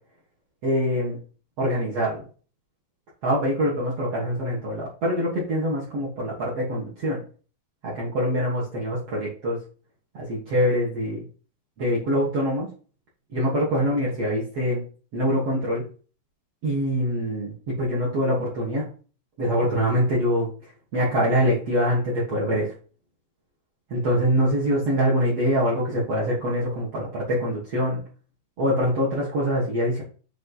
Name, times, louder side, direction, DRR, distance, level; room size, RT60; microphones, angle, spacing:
voice 1, 0.6-1.2 1.6-2.2 3.2-7.2 7.8-9.6 10.1-11.3 11.8-12.7 13.3-14.8 15.1-15.9 16.6-18.9 19.4-20.5 20.9-22.7 23.9-28.0 28.6-30.0, equal, 50° right, -6 dB, 2.0 m, -24 dB
8.1 x 3.4 x 4.1 m, 0.39 s
omnidirectional pair, 4.8 m